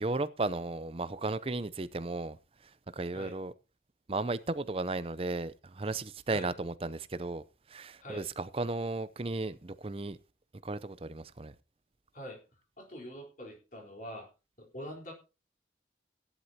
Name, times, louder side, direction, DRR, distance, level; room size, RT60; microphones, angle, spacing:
voice 1, 0.0-2.4 2.9-3.5 4.1-7.4 7.7-10.2 10.6-11.5, right 2 dB, 30° right, 0.6 m, -35 dB
voice 2, 12.8-14.3 14.6-15.1, equal, 45° left, 4.0 m, -44 dB
16.5 x 11.0 x 2.8 m
head